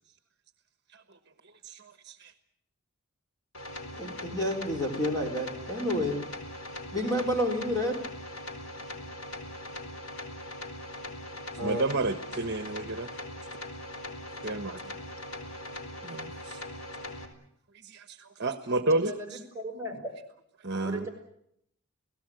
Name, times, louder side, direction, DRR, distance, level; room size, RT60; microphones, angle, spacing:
sound 1, 3.5-17.3, left 1 dB, 80° left, 4.2 m, -41 dB
voice 1, 3.9-6.2 6.9-8.0 11.6-11.8, left 1 dB, 15° left, 2 dB, 4.4 m, -29 dB
voice 2, 11.6-13.1 14.4-14.8 16.0-16.6 17.9-19.1 20.6-21.0, right 2 dB, 50° right, 8 dB, 1.3 m, -30 dB
voice 3, 18.9-20.1 20.8-21.1, right 1 dB, 10° right, 2 dB, 6.5 m, -38 dB
29.5 x 18.0 x 7.8 m, 0.75 s
head